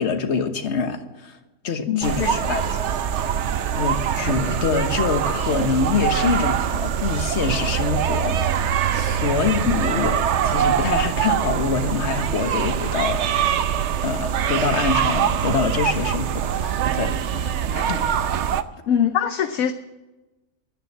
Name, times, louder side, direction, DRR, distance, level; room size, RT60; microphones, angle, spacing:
voice 1, 0.0-1.4 1.6-2.8 3.8-8.4 8.9-13.2 14.0-18.0, left 5 dB, 45° left, 6 dB, 1.4 m, -25 dB
voice 2, 1.9-2.6 18.9-19.7, left 9 dB, 65° left, 9 dB, 1.0 m, -23 dB
sound 1, 2.0-18.6, right 9 dB, 60° right, 0.8 m, -23 dB
11.5 x 10.0 x 7.4 m, 1.1 s
omnidirectional pair, 1.7 m